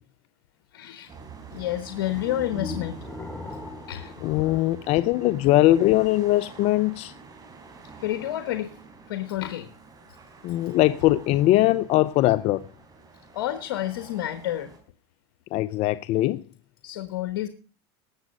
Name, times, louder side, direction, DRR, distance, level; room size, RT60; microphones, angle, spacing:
voice 1, 0.7-3.0 3.5-3.6 3.9-4.2 8.0-8.8 9.1-9.7 13.3-14.7 16.8-17.5, left 13 dB, 85° left, 1.2 m, -30 dB
sound 1, 1.1-14.8, right 4 dB, 30° right, 4.3 m, -47 dB
sound 2, 2.2-5.3, left 2 dB, 10° left, 1.9 m, -38 dB
voice 2, 4.2-7.1 10.4-12.6 15.5-16.4, left 16 dB, 50° left, 0.5 m, -21 dB
18.5 x 7.3 x 5.2 m
supercardioid pair, 115°, 13 cm